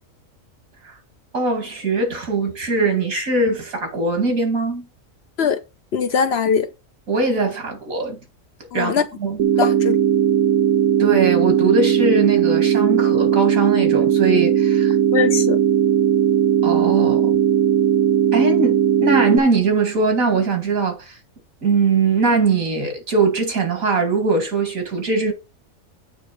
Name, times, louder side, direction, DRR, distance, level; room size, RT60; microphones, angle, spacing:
voice 1, 1.3-4.9 7.1-8.2 8.7-9.4 11.0-15.0 16.6-17.4 18.3-21.2 21.6-25.3, right 3 dB, 85° right, 2.7 m, -21 dB
voice 2, 5.9-6.7 8.7-9.0 9.6-10.0 15.1-15.6, left 6 dB, 55° left, 0.9 m, -20 dB
sound 1, 9.4-19.4, right 10 dB, 70° right, 1.3 m, -17 dB
8.5 x 3.3 x 6.4 m
omnidirectional pair, 1.4 m